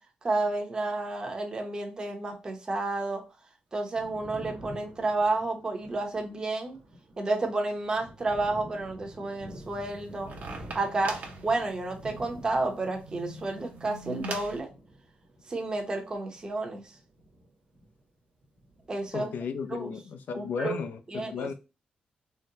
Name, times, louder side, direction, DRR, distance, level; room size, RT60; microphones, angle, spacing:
voice 1, 0.2-3.2 3.7-6.8 7.2-10.3 10.7-14.7 15.5-16.9 18.9-19.3 19.7-19.9 20.3-20.8 21.1-21.5, right 2 dB, 25° right, 0.7 m, -31 dB
Thunder, 3.7-18.2 18.4-19.7, equal, 90° right, 1.2 m, -49 dB
sound 1, 9.5-14.6, right 2 dB, 60° right, 0.8 m, -42 dB
voice 2, 19.1-21.5, left 5 dB, 80° left, 0.5 m, -34 dB
3.8 x 2.1 x 2.7 m
wide cardioid pair, 140°, 3 cm